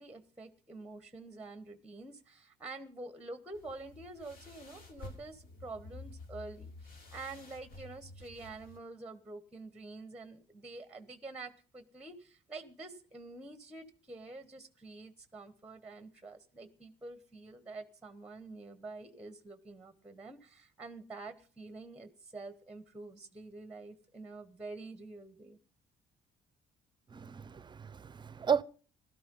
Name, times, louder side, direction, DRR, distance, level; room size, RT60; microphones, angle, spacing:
voice 1, 0.0-25.6, right 3 dB, 5° right, 1.2 m, -47 dB
sound 1, 3.5-8.8, left 2 dB, 60° left, 3.2 m, -51 dB
voice 2, 27.1-28.6, right 7 dB, 25° right, 0.6 m, -33 dB
16.5 x 12.5 x 5.4 m
cardioid pair, 110°, 17 cm